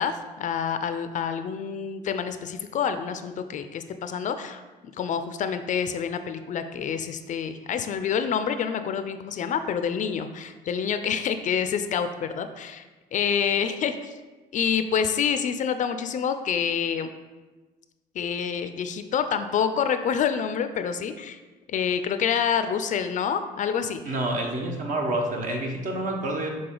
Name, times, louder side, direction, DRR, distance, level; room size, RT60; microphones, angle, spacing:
voice 1, 0.0-4.6 5.0-12.8 13.1-14.1 14.5-17.1 18.2-21.4 21.7-24.1, left 7 dB, 50° left, 9 dB, 0.4 m, -27 dB
voice 2, 24.0-26.5, right 1 dB, 50° right, 1 dB, 1.2 m, -28 dB
6.7 x 3.7 x 3.8 m, 1.2 s
cardioid pair, 110°, 17 cm